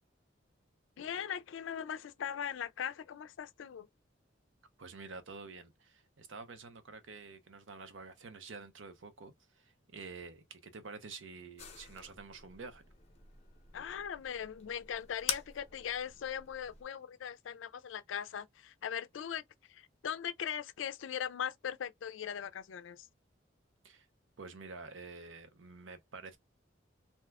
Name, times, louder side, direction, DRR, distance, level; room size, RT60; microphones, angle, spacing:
voice 1, 1.0-3.9 13.7-19.4 19.7-23.1, left 8 dB, 80° left, 0.4 m, -40 dB
voice 2, 4.8-12.8 23.8-24.1 24.4-26.4, right 4 dB, 80° right, 0.7 m, -49 dB
sound 1, 11.6-16.8, left 7 dB, 35° left, 0.8 m, -45 dB
2.7 x 2.3 x 3.4 m
head